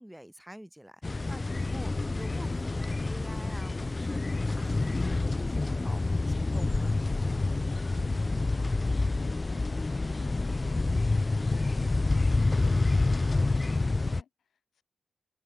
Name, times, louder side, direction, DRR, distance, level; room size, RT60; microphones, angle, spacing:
voice 1, 0.0-7.0, equal, 5° right, 1.9 m, -47 dB
sound 1, 1.0-14.2, left 3 dB, 30° left, 0.3 m, -28 dB
voice 2, 7.9-12.4 13.0-14.8, left 8 dB, 80° left, 7.6 m, -53 dB
cardioid pair, 60°, 0 cm